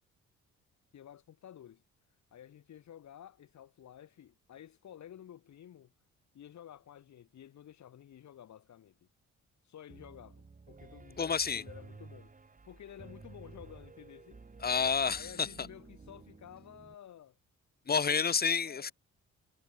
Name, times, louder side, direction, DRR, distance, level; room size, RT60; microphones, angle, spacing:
voice 1, 0.9-1.8 2.3-5.9 6.3-9.0 9.6-12.3 12.6-14.4 15.1-17.4 18.1-18.9, left 10 dB, 65° left, 7.8 m, -52 dB
Piano, 9.9-16.9, right 4 dB, 25° right, 4.5 m, -53 dB
voice 2, 11.2-11.6 14.6-15.5 17.9-18.9, left 6 dB, 30° left, 1.1 m, -29 dB
cardioid pair, 90°, 30 cm